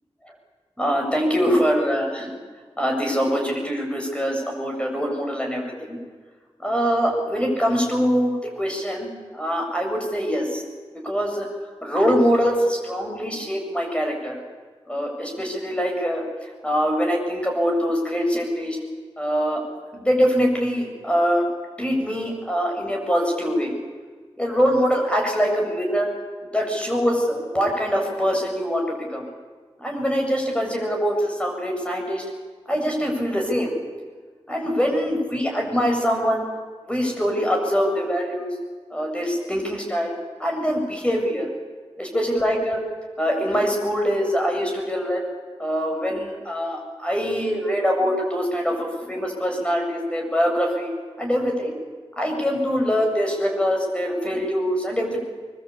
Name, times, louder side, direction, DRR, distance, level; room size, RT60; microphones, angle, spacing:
voice 1, 0.8-2.3 2.8-5.6 5.9-6.0 6.6-10.6 11.0-11.5 11.8-14.4 14.9-16.2 16.6-18.8 19.2-19.6 19.9-21.4 21.8-23.7 24.4-26.1 26.5-29.2 29.8-32.2 32.7-33.8 34.5-36.4 36.9-38.5 38.9-41.5 42.0-42.8 43.2-45.2 45.6-50.9 51.2-51.7 52.2-55.2, equal, 10° left, 1 dB, 7.7 m, -23 dB
23.5 x 22.5 x 8.7 m, 1.5 s
cardioid pair, 50°, 11 cm